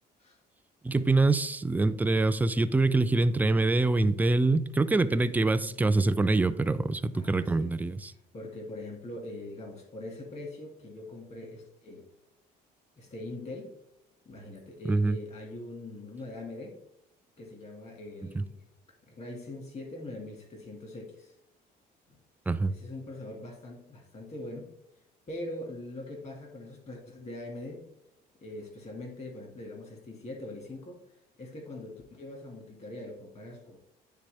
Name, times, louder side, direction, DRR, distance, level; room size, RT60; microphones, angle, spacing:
voice 1, 0.8-8.1 14.9-15.2 18.4-18.5 22.5-22.7, right 2 dB, 10° right, 0.3 m, -25 dB
voice 2, 7.1-7.8 8.1-12.1 13.0-13.8 14.3-16.8 17.4-18.6 19.1-21.4 22.1-22.2 22.7-24.7 25.3-27.9 28.4-31.1 31.4-33.8, left 1 dB, 40° left, 1.8 m, -42 dB
9.6 x 3.4 x 3.3 m
cardioid pair, 110°, 17 cm